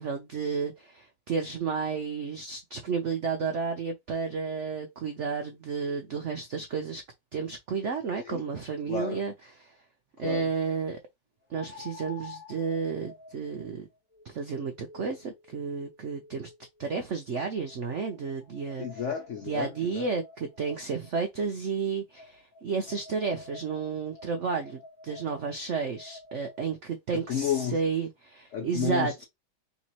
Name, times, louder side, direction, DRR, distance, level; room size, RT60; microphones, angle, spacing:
voice 1, 0.0-7.0 7.3-9.3 9.6-9.7 10.2-11.0 11.5-13.9 14.2-16.5 16.8-18.9 19.4-29.2, right 5 dB, 85° right, 0.6 m, -32 dB
voice 2, 8.9-9.2 10.2-10.5 18.8-20.1 27.1-27.8 28.5-29.2, left 8 dB, 75° left, 0.6 m, -32 dB
sound 1, 8.9-9.0 11.5-16.7 17.4-21.1 22.1-26.7, left 3 dB, 10° right, 0.6 m, -49 dB
3.4 x 3.0 x 4.1 m
omnidirectional pair, 2.1 m